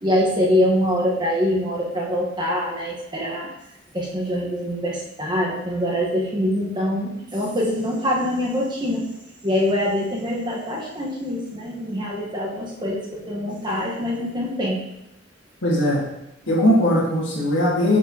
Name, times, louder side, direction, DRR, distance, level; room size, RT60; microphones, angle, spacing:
voice 1, 0.0-3.5 3.9-9.1 9.4-14.8, equal, 25° right, -3 dB, 1.2 m, -24 dB
voice 2, 15.6-16.1 16.5-18.0, equal, 70° left, -5 dB, 2.0 m, -19 dB
8.5 x 4.5 x 2.9 m, 0.86 s
head